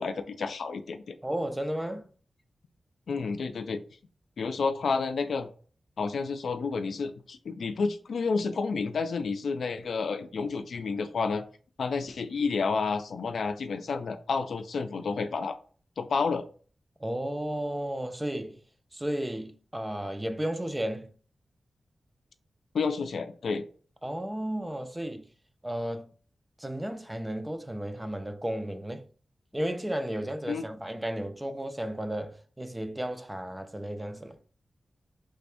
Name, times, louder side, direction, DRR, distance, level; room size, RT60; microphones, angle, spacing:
voice 1, 0.0-1.2 3.1-3.8 4.4-5.5 6.0-11.4 11.8-15.6 16.0-16.4 22.7-23.6 30.5-30.6, left 4 dB, 90° left, 0.4 m, -30 dB
voice 2, 1.2-2.1 17.0-18.6 18.9-21.1 24.0-25.3 25.6-26.1 26.6-29.0 29.5-34.4, right 1 dB, 10° right, 0.4 m, -33 dB
3.3 x 2.6 x 3.4 m
wide cardioid pair, 120°, 0 cm